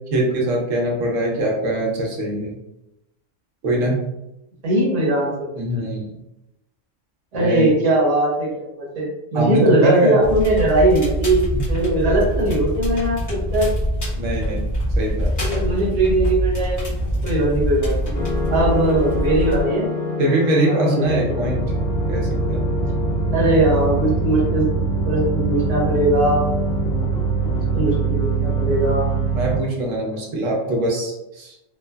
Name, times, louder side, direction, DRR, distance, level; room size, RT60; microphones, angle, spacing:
voice 1, 0.1-2.6 3.6-4.1 5.6-6.1 7.3-7.7 9.3-10.2 11.5-11.6 14.2-15.3 20.2-21.6 22.1-22.7 29.3-31.8, right 1 dB, 85° right, -2 dB, 1.1 m, -22 dB
voice 2, 4.6-5.5 7.3-11.4 11.7-13.7 15.4-16.9 17.2-18.1 18.5-19.9 20.7-21.4 23.3-24.6 25.0-26.5 27.7-29.1, right 1 dB, 35° right, -5 dB, 0.8 m, -20 dB
Crackle, 10.2-19.6, equal, 15° left, 0.8 m, -24 dB
sound 1, 18.1-29.6, right 2 dB, 80° left, 1.2 m, -23 dB
3.2 x 2.0 x 2.2 m, 0.90 s
omnidirectional pair, 1.3 m